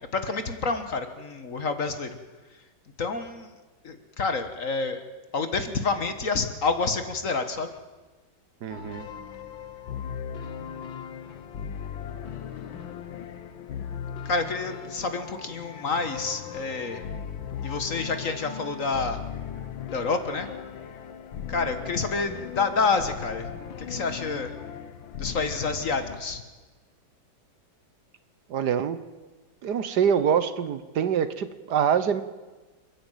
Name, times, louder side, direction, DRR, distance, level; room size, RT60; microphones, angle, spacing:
voice 1, 0.1-2.2 3.0-3.5 3.8-5.0 5.3-7.7 14.2-17.0 17.6-19.2 19.9-20.5 21.5-23.5 23.8-24.5 25.2-26.4, left 4 dB, 45° left, 9 dB, 1.7 m, -28 dB
voice 2, 8.6-9.0 28.5-29.0 29.6-32.2, right 8 dB, 65° right, 13 dB, 1.4 m, -25 dB
sound 1, 8.7-26.2, left 8 dB, 75° left, 1.9 m, -38 dB
29.0 x 10.5 x 9.1 m, 1.2 s
omnidirectional pair, 2.1 m